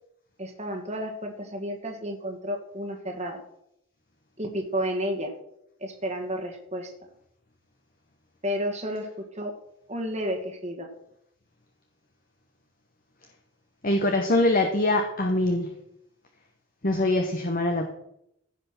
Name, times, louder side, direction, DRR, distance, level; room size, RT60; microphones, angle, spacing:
voice 1, 0.4-3.4 4.4-5.3 5.8-6.9 8.4-9.5 9.9-10.9, equal, 30° right, 3 dB, 1.7 m, -31 dB
voice 2, 13.8-15.7 16.8-17.9, left 1 dB, 40° left, 4 dB, 1.2 m, -23 dB
16.0 x 5.8 x 6.0 m, 0.77 s
head